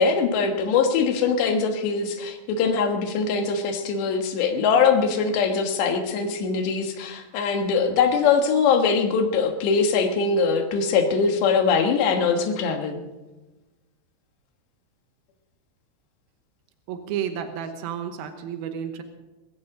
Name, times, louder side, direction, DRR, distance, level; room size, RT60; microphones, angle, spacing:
voice 1, 0.0-13.0, left 5 dB, 65° left, 5 dB, 3.3 m, -22 dB
voice 2, 16.9-19.0, right 8 dB, 90° right, 7 dB, 2.1 m, -31 dB
21.5 x 16.0 x 3.9 m, 1.1 s
omnidirectional pair, 5.9 m